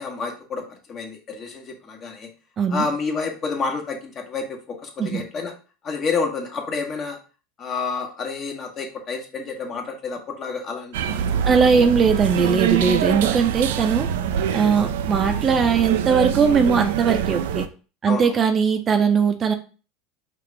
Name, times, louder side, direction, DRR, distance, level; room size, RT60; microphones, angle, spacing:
voice 1, 0.0-2.3 2.7-5.5 5.8-7.2 7.6-11.2 11.4-11.6 14.7-14.9 18.1-18.4, left 4 dB, 40° left, 2 dB, 1.2 m, -29 dB
sound 1, 10.9-17.7, right 9 dB, 80° right, 0.3 m, -24 dB
voice 2, 11.5-14.1 14.5-17.7 18.0-19.5, right 6 dB, 35° right, 6 dB, 0.6 m, -19 dB
5.0 x 2.5 x 3.2 m, 0.35 s
hypercardioid pair, 100°, 0 cm